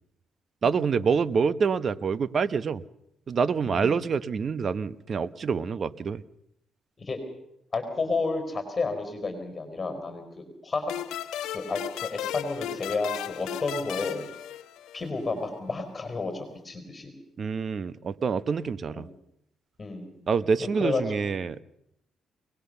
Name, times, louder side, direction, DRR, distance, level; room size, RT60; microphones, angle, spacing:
voice 1, 0.6-2.8 3.3-6.2 17.4-19.1 20.3-21.6, right 5 dB, 45° right, 16 dB, 0.9 m, -26 dB
voice 2, 7.7-10.9 11.5-14.3 14.9-17.1 18.9-19.0 19.8-20.2 20.6-21.0, left 3 dB, 30° left, 7 dB, 4.6 m, -31 dB
sound 1, 10.9-15.3, left 12 dB, 90° left, 1.0 m, -35 dB
22.5 x 19.5 x 6.8 m, 0.78 s
cardioid pair, 90°, 0 cm